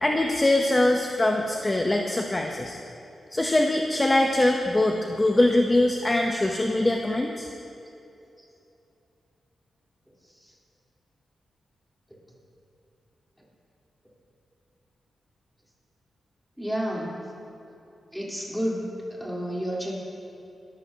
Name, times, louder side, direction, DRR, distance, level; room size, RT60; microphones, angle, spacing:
voice 1, 0.0-2.8 3.3-7.5, left 1 dB, 20° left, 2 dB, 0.8 m, -23 dB
voice 2, 16.6-17.2 18.1-18.9 19.1-20.0, equal, ahead, -5 dB, 3.6 m, -30 dB
22.0 x 14.0 x 2.8 m, 2.8 s
wide cardioid pair, 110°, 0 cm